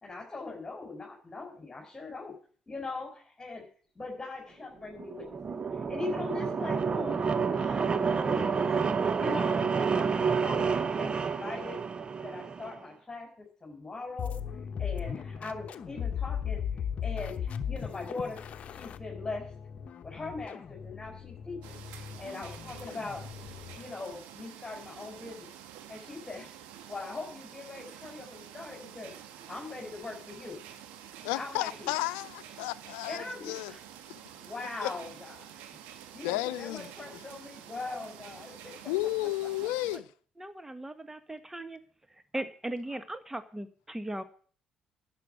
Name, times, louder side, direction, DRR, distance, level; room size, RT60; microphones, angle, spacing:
voice 1, 0.0-2.3 2.7-3.6 3.9-5.4 5.7-7.2 7.5-8.7 9.2-10.6 10.9-11.8 12.2-14.3 14.8-18.4 18.7-19.4 20.0-23.3 23.8-25.5 25.9-26.5 26.9-29.1 29.5-30.6 31.3-31.9 33.0-33.8 34.4-35.7 36.1-38.8, left 3 dB, 25° left, 4.8 m, -41 dB
sound 1, 4.9-12.8, right 5 dB, 40° right, 1.1 m, -29 dB
sound 2, 14.2-23.9, left 8 dB, 55° left, 1.0 m, -37 dB
sound 3, 21.6-40.0, right 10 dB, 75° right, 1.5 m, -49 dB
voice 2, 31.2-33.7 34.8-34.9 36.2-36.9 38.9-40.1, left 17 dB, 75° left, 0.7 m, -32 dB
voice 3, 40.4-41.8 42.3-44.2, right 1 dB, 10° right, 1.5 m, -38 dB
11.5 x 7.7 x 9.1 m
hypercardioid pair, 50°, 3 cm